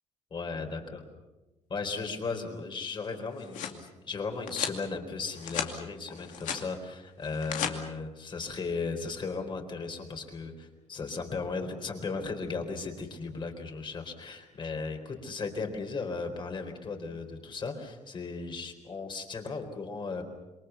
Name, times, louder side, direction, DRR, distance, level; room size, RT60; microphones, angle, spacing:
voice 1, 0.3-1.0 1.7-20.2, left 4 dB, 40° left, 5 dB, 4.1 m, -36 dB
sound 1, 3.1-3.8 4.5-4.8 5.3-5.7 6.1-6.6 7.2-7.7, left 9 dB, 90° left, 2.4 m, -35 dB
27.0 x 23.0 x 7.0 m, 1.1 s
cardioid pair, 120°, 13 cm